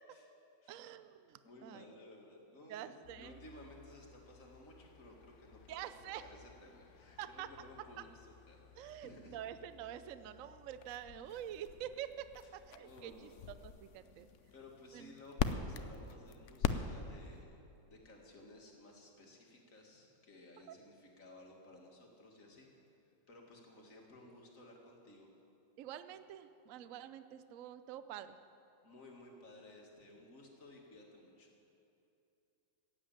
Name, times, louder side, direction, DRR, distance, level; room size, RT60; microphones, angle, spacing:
voice 1, 0.7-1.9 2.7-3.4 5.7-6.3 7.2-7.5 8.8-12.3 12.5-13.3 13.6-14.3 14.9-15.1 20.7-20.8 25.8-28.4, right 11 dB, 75° right, 12 dB, 0.7 m, -47 dB
voice 2, 1.4-5.9 6.2-9.4 12.8-13.3 14.1-14.2 14.5-17.6 17.9-25.3 28.8-31.5, left 1 dB, 45° left, 0 dB, 2.3 m, -57 dB
sound 1, 3.0-17.4, left 7 dB, 90° left, 0.6 m, -44 dB
15.0 x 8.6 x 9.0 m, 2.7 s
omnidirectional pair, 2.1 m